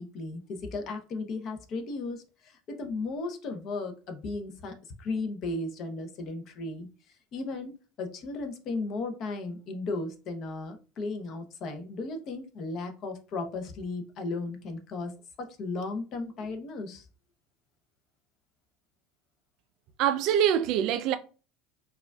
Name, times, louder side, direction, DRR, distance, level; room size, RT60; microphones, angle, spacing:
voice 1, 0.0-17.1, left 3 dB, 40° left, 0.7 m, -35 dB
voice 2, 20.0-21.2, right 10 dB, 55° right, 0.4 m, -24 dB
4.8 x 2.4 x 2.3 m
cardioid pair, 150°, 0 cm